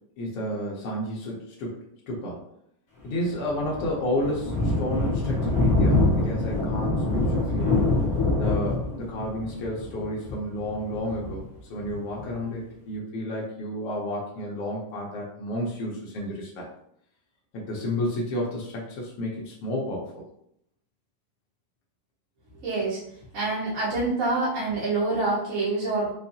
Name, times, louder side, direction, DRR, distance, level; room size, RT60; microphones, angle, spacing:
voice 1, 0.2-1.8 2.1-2.4 3.0-7.9 8.4-16.7 17.5-20.2, left 1 dB, 90° left, -4 dB, 1.3 m, -31 dB
Thunder, 3.2-12.3, left 2 dB, 40° left, 0.8 m, -25 dB
voice 2, 22.6-23.0 23.3-26.1, right 3 dB, 75° right, -7 dB, 0.7 m, -26 dB
5.3 x 2.3 x 2.7 m, 0.71 s
omnidirectional pair, 3.7 m